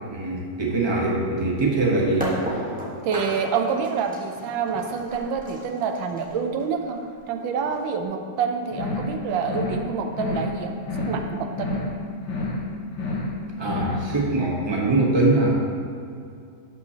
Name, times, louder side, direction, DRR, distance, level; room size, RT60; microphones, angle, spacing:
voice 1, 0.1-2.3 13.6-15.6, right 2 dB, 30° right, -2 dB, 0.5 m, -22 dB
sound 1, 2.2-8.0, equal, 5° right, 0.9 m, -34 dB
voice 2, 3.0-7.0 7.3-11.8, right 6 dB, 80° right, 5 dB, 1.3 m, -27 dB
sound 2, 8.7-9.2 9.4-9.8 10.1-10.6 10.8-11.3 11.5-12.0 12.2-12.6 12.9-13.4 13.6-14.0, left 2 dB, 65° left, 1.5 m, -29 dB
11.5 x 5.5 x 2.8 m, 2.4 s
omnidirectional pair, 2.1 m